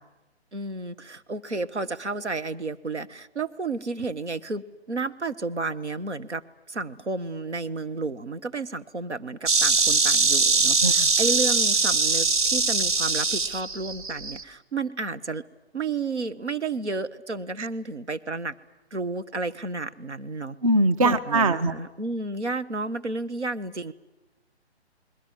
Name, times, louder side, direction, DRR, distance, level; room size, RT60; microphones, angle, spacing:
voice 1, 0.5-6.4 6.7-15.4 15.7-18.5 18.9-20.6 21.0-23.9, right 3 dB, 80° right, 10 dB, 1.4 m, -32 dB
Insect, 9.5-14.4, right 4 dB, 45° right, 1.6 m, -22 dB
voice 2, 20.6-21.7, right 2 dB, 30° right, 11 dB, 0.9 m, -21 dB
28.5 x 21.0 x 7.5 m, 1.1 s
figure-of-eight pair, 140°, 34 cm